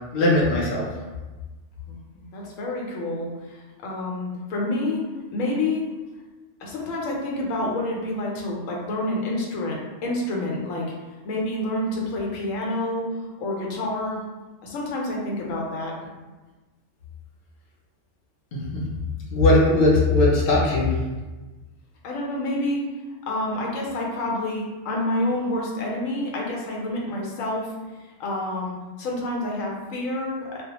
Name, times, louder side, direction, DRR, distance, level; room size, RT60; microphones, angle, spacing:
voice 1, 0.1-0.8 18.5-18.8 19.3-20.9, left 2 dB, 50° left, -5 dB, 0.6 m, -19 dB
voice 2, 1.9-5.0 5.3-5.9 6.6-10.9 11.2-13.0 13.4-14.2 14.6-15.9 22.0-22.9 23.3-27.7 28.2-30.6, left 1 dB, 90° left, -2 dB, 1.0 m, -28 dB
2.3 x 2.1 x 2.8 m, 1.2 s
omnidirectional pair, 1.3 m